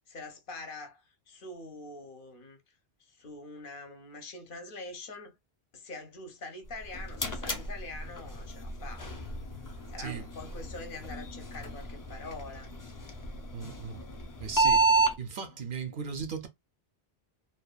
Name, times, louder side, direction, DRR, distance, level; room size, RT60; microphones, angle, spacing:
voice 1, 0.1-2.7 3.0-5.4 5.7-9.1 9.9-12.7, left 2 dB, 60° left, 0.8 m, -44 dB
sound 1, 6.7-15.1, right 3 dB, 30° left, 0.4 m, -31 dB
voice 2, 13.5-14.0 14.4-14.9 15.2-16.5, right 6 dB, 60° right, 0.7 m, -37 dB
2.7 x 2.2 x 2.3 m
omnidirectional pair, 1.0 m